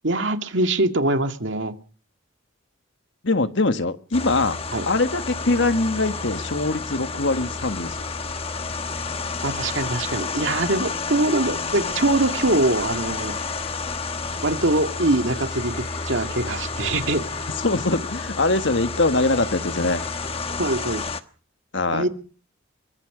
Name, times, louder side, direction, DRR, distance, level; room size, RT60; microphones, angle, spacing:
voice 1, 0.0-1.8 4.7-4.9 9.4-13.3 14.4-17.2 20.6-21.1 21.9-22.1, right 2 dB, 60° right, 2.2 m, -23 dB
voice 2, 3.2-4.6 4.9-8.0 17.6-20.0 21.7-22.0, left 2 dB, 60° left, 1.5 m, -22 dB
sound 1, 4.1-21.2, left 4 dB, 25° left, 1.2 m, -30 dB
sound 2, 7.4-21.1, left 5 dB, 80° left, 3.0 m, -44 dB
23.5 x 23.5 x 5.0 m
head